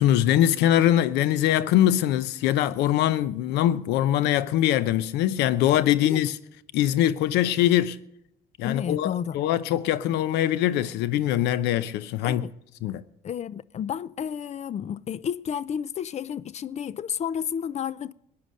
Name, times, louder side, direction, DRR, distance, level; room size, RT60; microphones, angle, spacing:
voice 1, 0.0-6.4 6.7-8.0 8.6-12.4 12.8-13.0, left 12 dB, 90° left, 0.7 m, -22 dB
voice 2, 8.6-9.4 12.2-12.5 13.2-18.1, left 8 dB, 40° left, 0.5 m, -31 dB
15.5 x 9.7 x 6.4 m
cardioid pair, 110°, 17 cm